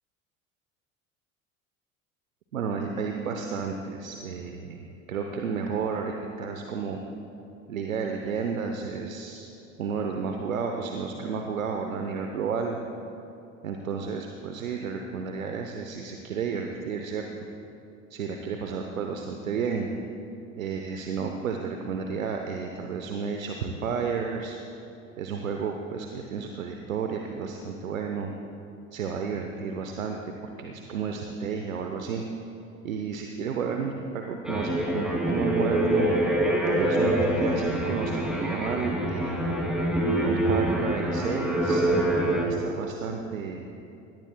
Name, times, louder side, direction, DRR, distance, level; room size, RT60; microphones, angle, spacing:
voice 1, 2.5-7.0 7.7-9.5 9.8-12.8 13.6-17.5 18.1-19.9 20.5-24.6 25.2-28.3 28.9-30.2 30.6-32.2 32.8-36.2 36.7-39.6 40.2-43.6, right 5 dB, 80° right, 4 dB, 0.9 m, -32 dB
sound 1, 34.4-42.4, right 1 dB, ahead, 2.8 m, -25 dB
22.5 x 18.0 x 2.3 m, 2.8 s
figure-of-eight pair, 65°, 40 cm